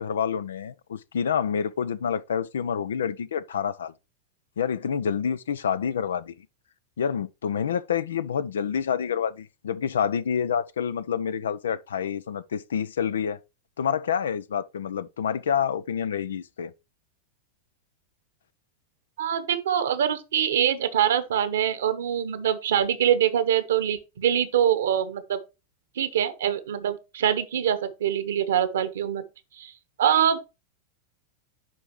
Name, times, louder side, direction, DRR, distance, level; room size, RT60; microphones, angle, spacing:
voice 1, 0.0-3.9 4.6-6.5 7.0-13.4 13.8-16.7, left 7 dB, 65° left, 0.5 m, -28 dB
voice 2, 19.2-25.4 26.0-29.2 29.6-29.7 30.0-30.4, right 9 dB, 60° right, 1.2 m, -24 dB
11.0 x 4.4 x 3.1 m
figure-of-eight pair, 90°, 0 cm